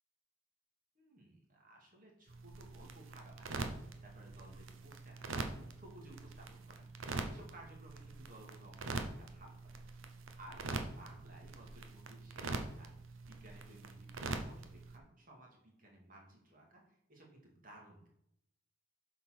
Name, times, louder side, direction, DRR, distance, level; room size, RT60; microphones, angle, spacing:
voice 1, 1.0-9.7 10.1-12.9 13.2-18.1, right 1 dB, 40° right, -1 dB, 2.3 m, -58 dB
sound 1, 2.3-15.0, right 3 dB, 75° right, 0.9 m, -44 dB
7.6 x 4.5 x 5.9 m, 0.78 s
head